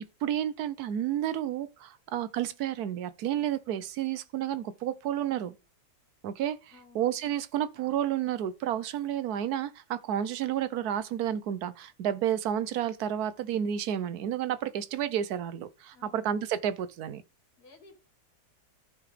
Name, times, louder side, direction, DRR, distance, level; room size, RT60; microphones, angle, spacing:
voice 1, 0.2-5.5 6.2-6.6 6.9-17.2, right 10 dB, 75° right, 1.2 m, -31 dB
voice 2, 6.7-7.0 15.9-16.3 17.6-18.0, left 3 dB, 75° left, 3.1 m, -55 dB
14.5 x 4.9 x 3.3 m
omnidirectional pair, 1.7 m